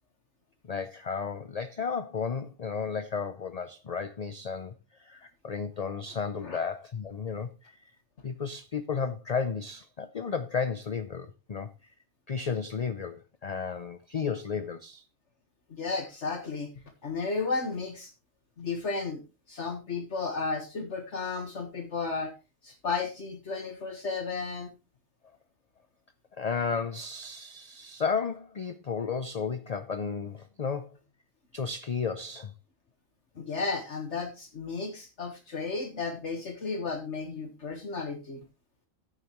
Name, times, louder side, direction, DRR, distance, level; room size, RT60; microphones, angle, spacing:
voice 1, 0.7-7.8 8.2-11.7 12.3-15.0 26.3-31.0 31.5-32.5, left 5 dB, 40° left, 0.6 m, -33 dB
voice 2, 15.7-16.7 17.0-18.1 18.6-19.2 19.5-22.3 22.6-24.7 33.4-38.4, left 4 dB, 65° left, 1.8 m, -33 dB
15.0 x 6.8 x 3.0 m
omnidirectional pair, 1.3 m